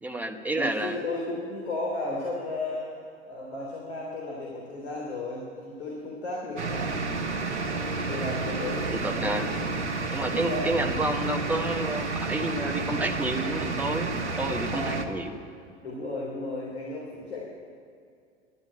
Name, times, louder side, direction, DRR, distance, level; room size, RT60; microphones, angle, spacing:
voice 1, 0.0-1.0 8.9-9.5 10.1-15.4, right 2 dB, 5° right, 4 dB, 1.1 m, -30 dB
voice 2, 0.6-3.0 3.3-7.0 8.1-9.4 10.0-10.6 14.7-15.1 15.8-17.5, left 2 dB, 70° left, -3 dB, 3.4 m, -34 dB
sound 1, 6.6-15.0, right 3 dB, 85° right, 1.3 m, -30 dB
11.5 x 11.5 x 8.8 m, 2.3 s
figure-of-eight pair, 85°, 34 cm